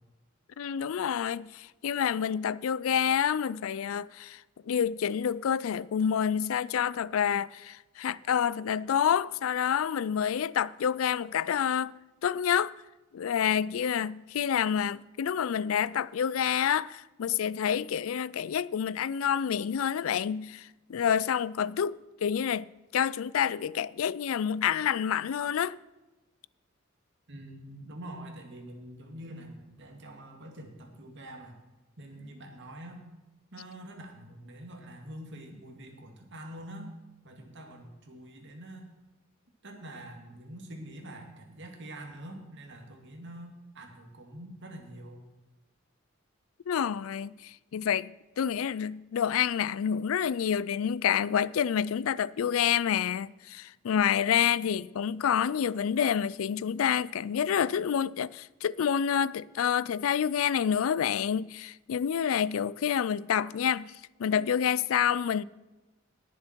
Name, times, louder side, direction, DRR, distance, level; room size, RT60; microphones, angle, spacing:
voice 1, 0.6-4.4 4.7-11.9 12.2-12.7 13.1-22.7 22.9-25.7 46.7-63.9 64.2-65.4, left 8 dB, 90° left, 0.4 m, -28 dB
voice 2, 27.3-31.6 32.0-33.0 33.5-36.9 37.2-38.9 39.6-45.2, right 1 dB, 60° right, 2.3 m, -45 dB
19.5 x 7.2 x 4.5 m
head